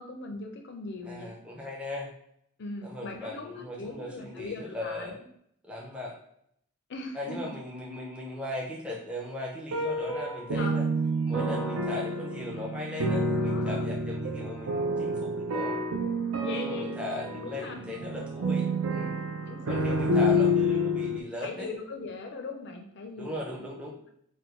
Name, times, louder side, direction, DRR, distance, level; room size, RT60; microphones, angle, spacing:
voice 1, 0.0-1.3 2.6-5.1 6.9-7.5 10.5-10.8 13.4-13.9 16.4-16.9 17.3-17.8 19.5-20.5 21.4-23.6, left 3 dB, 50° left, 3 dB, 0.5 m, -39 dB
voice 2, 1.0-2.1 2.8-5.2 5.6-6.2 7.1-10.9 11.2-15.8 16.5-19.2 19.7-21.7 23.2-24.1, left 1 dB, 5° right, -4 dB, 0.5 m, -38 dB
sound 1, 9.7-21.2, equal, 75° right, 0.5 m, -29 dB
3.4 x 2.2 x 3.0 m, 0.72 s
head